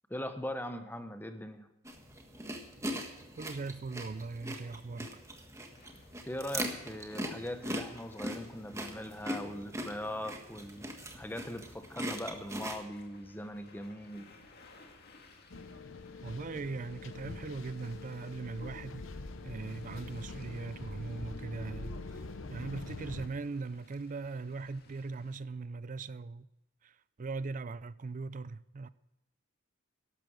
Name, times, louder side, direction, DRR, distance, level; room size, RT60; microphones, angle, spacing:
voice 1, 0.1-1.7 6.3-10.9 11.2-14.3, left 1 dB, 10° left, 1.0 m, -40 dB
sound 1, 1.8-12.8, equal, 15° right, 1.5 m, -41 dB
voice 2, 3.4-5.1 16.2-19.1 19.4-22.2 22.5-26.5 26.8-28.9, right 3 dB, 40° right, 0.4 m, -40 dB
sound 2, 5.7-25.4, left 3 dB, 50° left, 2.1 m, -61 dB
sound 3, 15.5-23.3, left 3 dB, 70° left, 0.9 m, -44 dB
12.5 x 12.0 x 6.4 m
head